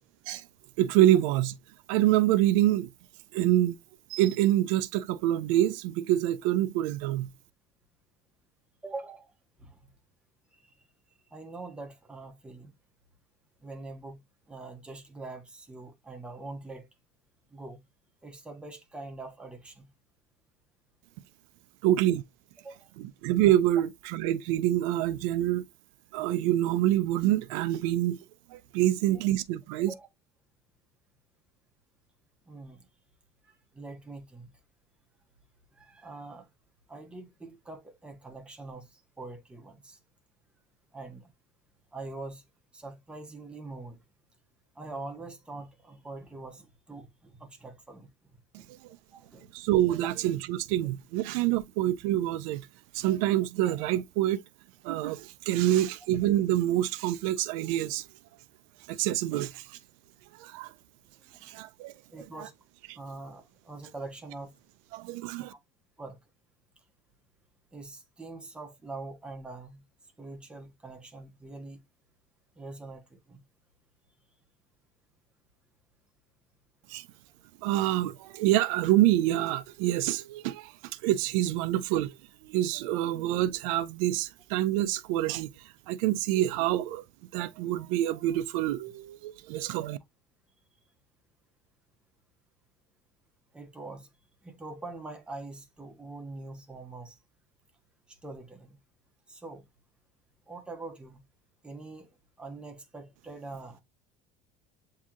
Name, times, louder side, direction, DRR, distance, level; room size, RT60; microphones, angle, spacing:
voice 1, 0.8-1.5 1.9-2.9 3.3-3.8 4.1-7.3 21.8-22.2 23.0-25.7 26.1-28.2 28.5-29.9 48.7-49.0 49.5-52.7 52.9-54.4 54.8-58.1 58.9-59.8 60.3-60.7 61.4-61.9 62.4-62.5 62.9-63.0 64.9-65.5 76.9-77.1 77.6-80.8 81.0-82.2 82.4-87.1 87.3-90.0, right 13 dB, 80° right, 0.4 m, -26 dB
voice 2, 8.8-9.3 9.6-9.8 10.5-10.7 11.3-12.7 13.6-14.2 14.5-16.9 17.5-17.8 18.2-19.9 22.6-22.9 29.8-30.1 32.5-32.9 33.4-34.5 35.7-36.5 36.9-40.0 40.9-41.3 41.9-42.4 42.7-44.0 44.7-48.1 48.5-48.7 49.1-49.5 55.6-55.7 61.2-61.5 62.1-62.5 62.9-64.5 65.5-65.6 66.0-66.2 67.7-69.8 70.2-71.8 72.6-73.4 93.5-94.1 94.4-97.2 98.1-98.8 99.3-99.7 100.5-101.2 101.6-103.8, right 3 dB, 5° right, 0.7 m, -44 dB
7.2 x 2.7 x 2.4 m
cardioid pair, 175°, 17 cm